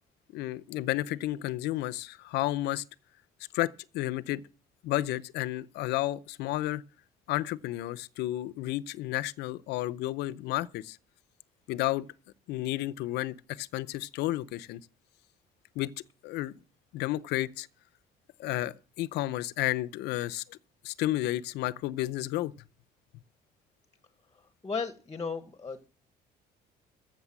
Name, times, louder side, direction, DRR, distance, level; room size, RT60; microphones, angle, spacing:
voice 1, 0.3-2.8 3.5-4.4 4.8-6.8 7.3-11.0 11.7-12.1 12.5-14.8 15.8-15.9 16.2-16.5 16.9-17.7 18.4-20.6 20.8-22.5, left 16 dB, 85° left, 0.7 m, -32 dB
voice 2, 24.4-25.9, left 5 dB, 20° left, 1.1 m, -36 dB
14.5 x 6.7 x 7.4 m
cardioid pair, 110°, 17 cm